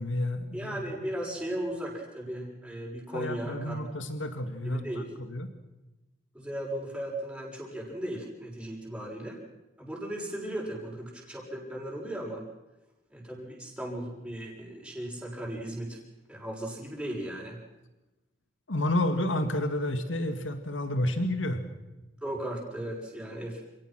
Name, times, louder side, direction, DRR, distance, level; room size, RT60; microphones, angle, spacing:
voice 1, 0.0-0.8 3.1-5.5 18.7-21.6, left 1 dB, 90° left, 8 dB, 2.1 m, -30 dB
voice 2, 0.5-3.8 4.6-5.1 6.3-9.4 9.8-12.4 13.1-16.0 16.3-17.6 22.2-23.6, right 1 dB, 5° right, -3 dB, 6.6 m, -36 dB
29.0 x 18.0 x 6.2 m, 1.0 s
head